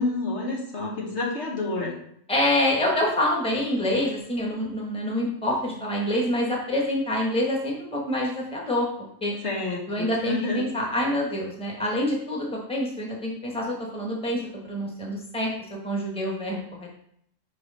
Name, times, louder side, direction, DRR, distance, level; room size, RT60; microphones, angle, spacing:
voice 1, 0.0-1.9 9.4-10.6, left 3 dB, 65° left, -2 dB, 1.5 m, -29 dB
voice 2, 2.3-8.9 9.2-9.4 9.9-15.5 15.8-17.0, left 1 dB, 5° left, -2 dB, 1.2 m, -26 dB
6.1 x 3.3 x 5.5 m, 0.69 s
omnidirectional pair, 1.3 m